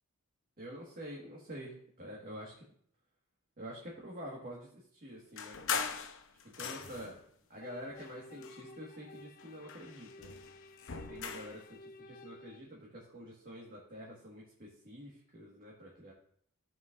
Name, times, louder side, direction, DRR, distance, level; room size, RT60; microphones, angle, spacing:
voice 1, 0.6-2.6 3.6-5.6 6.4-7.2 7.5-10.3 11.1-11.6 12.0-16.1, equal, 40° right, -4 dB, 1.7 m, -47 dB
sound 1, 5.4-7.2 7.9-9.1 9.4-11.6, left 6 dB, 60° left, 0.7 m, -40 dB
sound 2, 7.6-12.6, left 2 dB, 40° left, 0.3 m, -53 dB
14.5 x 6.0 x 2.6 m, 0.63 s
head